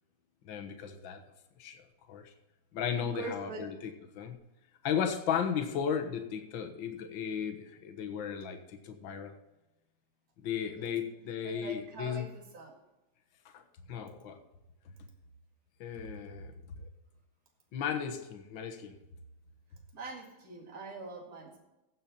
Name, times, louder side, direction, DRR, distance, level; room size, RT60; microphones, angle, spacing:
voice 1, 0.4-1.2 1.6-1.8 2.1-2.3 2.7-4.4 4.8-9.3 10.4-12.3 13.5-13.6 13.9-14.4 15.8-16.9 17.7-19.0, left 7 dB, 55° left, 5 dB, 1.5 m, -35 dB
voice 2, 3.1-3.6 10.8-10.9 11.4-12.7 19.9-21.6, right 3 dB, 30° right, 1 dB, 2.3 m, -43 dB
15.5 x 6.9 x 4.3 m, 0.98 s
omnidirectional pair, 3.4 m